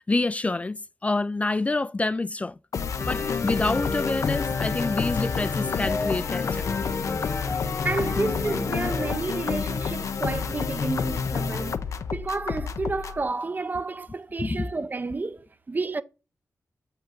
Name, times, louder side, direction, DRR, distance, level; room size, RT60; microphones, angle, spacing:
voice 1, 0.0-2.5 3.0-6.6 14.4-14.7, left 2 dB, 25° left, 0.4 m, -27 dB
sound 1, 2.7-13.2, left 6 dB, 80° left, 0.7 m, -29 dB
sound 2, 3.0-9.2, left 3 dB, 40° left, 0.9 m, -33 dB
sound 3, 6.3-14.4, right 3 dB, 65° right, 2.0 m, -54 dB
voice 2, 7.5-11.8 12.1-16.0, right 3 dB, 35° right, 0.6 m, -30 dB
7.7 x 5.6 x 3.7 m
wide cardioid pair, 85°, 5 cm